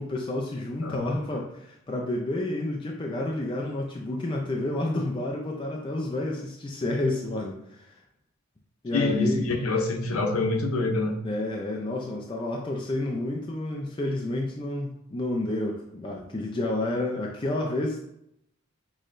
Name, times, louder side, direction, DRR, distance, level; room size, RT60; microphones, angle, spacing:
voice 1, 0.0-7.9 8.8-9.4 11.2-18.1, left 1 dB, 25° left, 0 dB, 0.4 m, -30 dB
voice 2, 8.9-11.2, left 3 dB, 85° left, 4 dB, 0.7 m, -25 dB
6.2 x 3.1 x 2.5 m, 0.78 s
head